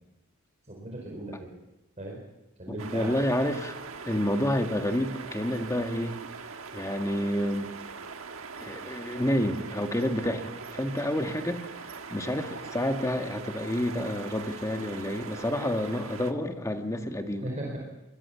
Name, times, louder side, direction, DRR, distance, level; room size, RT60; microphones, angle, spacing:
voice 1, 0.7-1.5 2.0-2.2 2.6-3.1 17.4-17.9, right 1 dB, 35° right, -2 dB, 4.5 m, -37 dB
voice 2, 2.7-3.8 4.0-6.2 6.7-7.8 8.6-11.7 12.1-17.5, left 1 dB, 15° left, 5 dB, 1.7 m, -29 dB
sound 1, 2.8-16.3, right 5 dB, 70° right, 1.4 m, -42 dB
24.0 x 21.0 x 5.8 m, 0.95 s
head